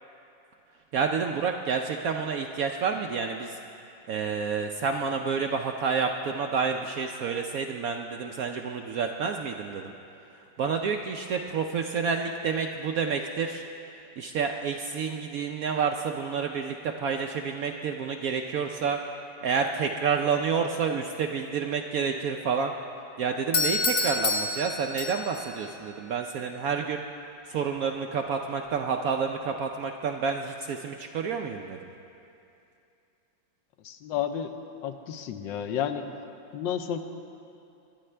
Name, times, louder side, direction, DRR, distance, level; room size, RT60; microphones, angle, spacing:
voice 1, 0.9-3.6 4.1-9.9 10.6-13.6 14.2-19.0 19.4-22.7 23.2-27.0 27.5-31.8, right 6 dB, 70° right, 4 dB, 0.8 m, -29 dB
Doorbell, 23.5-25.5, left 3 dB, 45° left, 0.7 m, -28 dB
voice 2, 33.8-34.5 34.8-36.1 36.5-37.0, left 9 dB, 80° left, 7 dB, 1.4 m, -31 dB
21.0 x 12.0 x 3.3 m, 2.6 s
omnidirectional pair, 2.0 m